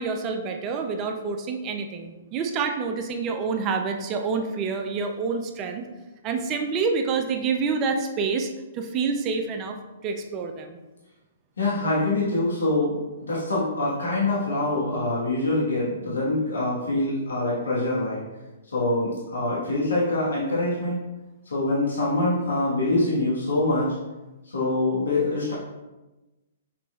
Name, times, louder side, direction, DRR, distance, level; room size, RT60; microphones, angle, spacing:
voice 1, 0.0-5.9 6.2-8.5 8.7-9.8 10.0-10.8, right 5 dB, 30° right, 5 dB, 0.4 m, -27 dB
voice 2, 11.6-18.2 18.7-21.0 21.5-23.9 24.4-25.5, left 2 dB, 85° left, -6 dB, 1.2 m, -25 dB
5.8 x 2.9 x 2.3 m, 1.1 s
hypercardioid pair, 130°, 0 cm